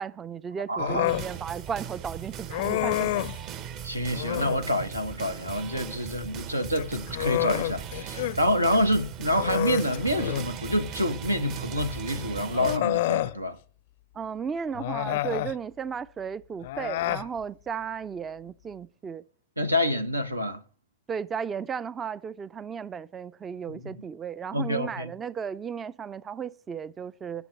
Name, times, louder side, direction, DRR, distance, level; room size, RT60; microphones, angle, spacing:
voice 1, 0.0-3.5 14.1-19.2 21.1-27.4, right 7 dB, 20° right, 0.4 m, -35 dB
voice 2, 0.7-1.1 3.8-13.6 19.6-20.6 23.7-23.8 24.5-25.1, equal, 85° right, 1.1 m, -27 dB
Human voice, 0.8-1.3 2.5-3.4 4.1-4.7 6.6-8.4 8.7-8.9 9.3-10.6 11.8-11.9 12.5-13.4 14.7-15.6 16.6-17.3, left 17 dB, 55° left, 0.5 m, -29 dB
sound 1, 1.1-12.8, right 9 dB, 40° right, 0.9 m, -39 dB
20.5 x 7.1 x 3.2 m
figure-of-eight pair, 90°, 0 cm